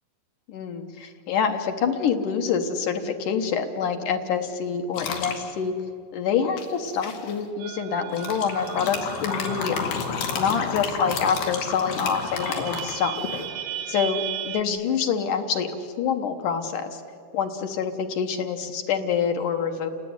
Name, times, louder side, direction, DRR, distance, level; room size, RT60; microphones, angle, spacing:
voice 1, 0.5-5.7 6.1-10.0 10.3-13.2 13.9-17.0 17.3-19.9, left 6 dB, 65° left, 5 dB, 2.5 m, -26 dB
sound 1, 4.9-5.4 6.6-7.3 8.1-13.5, left 5 dB, 85° left, 4.3 m, -31 dB
sound 2, 7.6-11.2 11.5-11.6 11.8-14.6, right 13 dB, 80° right, 2.8 m, -37 dB
29.5 x 19.0 x 9.6 m, 2.4 s
omnidirectional pair, 4.4 m